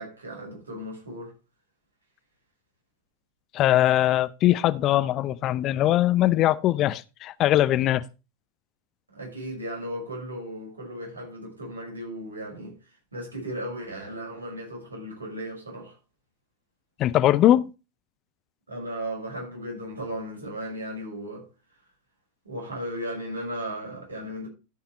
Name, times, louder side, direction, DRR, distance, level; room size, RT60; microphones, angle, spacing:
voice 1, 0.0-1.3 9.1-16.0 18.7-21.5 22.4-24.5, equal, 75° right, 5.6 m, -36 dB
voice 2, 3.5-8.1 17.0-17.7, left 13 dB, 35° left, 0.5 m, -21 dB
13.5 x 5.9 x 4.3 m
figure-of-eight pair, 90°, 0 cm